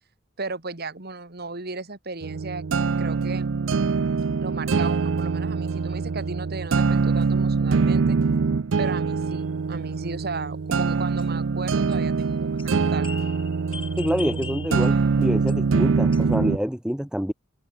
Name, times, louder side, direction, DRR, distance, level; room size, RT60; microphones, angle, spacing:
voice 1, 0.4-2.7 3.0-3.5 4.4-8.2 8.8-13.2, right 3 dB, 55° right, 2.5 m, -35 dB
sound 1, 2.2-16.6, right 4 dB, 90° right, 0.5 m, -24 dB
sound 2, 9.3-9.5 11.2-12.2 12.6-15.7 16.1-16.4, left 6 dB, 30° left, 7.2 m, -42 dB
voice 2, 14.0-17.3, equal, 5° right, 1.0 m, -26 dB
head